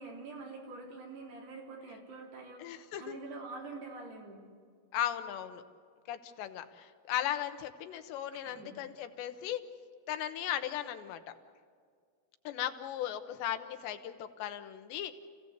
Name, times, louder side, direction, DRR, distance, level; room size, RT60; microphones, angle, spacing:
voice 1, 0.0-4.4 7.9-8.0 8.3-8.7, right 3 dB, 70° right, -1 dB, 5.6 m, -46 dB
voice 2, 2.6-3.2 4.9-5.6 6.1-9.6 10.1-11.2 12.4-15.1, left 11 dB, 90° left, 8 dB, 3.4 m, -37 dB
29.5 x 16.5 x 8.1 m, 2.1 s
omnidirectional pair, 4.9 m